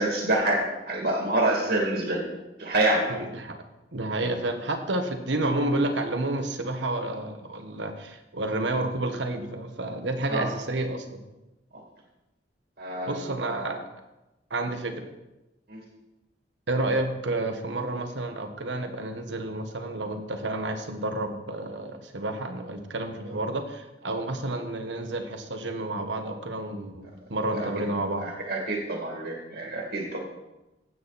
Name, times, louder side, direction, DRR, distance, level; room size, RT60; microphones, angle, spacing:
voice 1, 0.0-2.2 2.6-3.1 10.3-10.5 12.8-13.6 15.7-15.8 23.2-23.4 27.5-27.7 28.2-30.2, right 1 dB, 70° right, -1 dB, 2.5 m, -27 dB
voice 2, 3.1-3.6 3.9-11.2 13.1-13.9 14.5-15.1 16.7-28.3, right 2 dB, 85° right, 6 dB, 1.4 m, -30 dB
15.0 x 8.0 x 4.2 m, 1.0 s
head